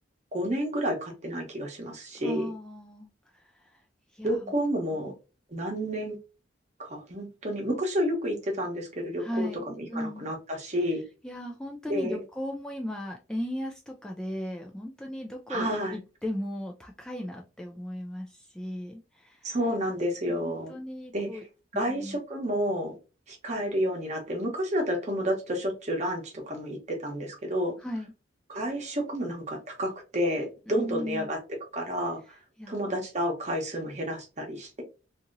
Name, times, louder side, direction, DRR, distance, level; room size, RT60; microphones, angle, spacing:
voice 1, 0.3-2.5 4.2-5.1 5.5-6.2 6.8-11.0 11.9-12.2 15.5-16.0 19.4-20.8 21.1-21.4 21.7-23.0 23.3-27.7 28.5-31.4 31.7-32.4 32.7-34.8, equal, 40° right, 2 dB, 0.9 m, -30 dB
voice 2, 2.2-3.1 3.3-3.4 4.1-4.5 9.2-9.6 9.9-10.3 11.2-19.6 20.3-21.4 21.7-22.2 27.8-28.1 30.7-31.3 32.6-33.0, left 1 dB, 5° left, 0 dB, 0.3 m, -36 dB
2.8 x 2.6 x 2.5 m, 0.31 s
head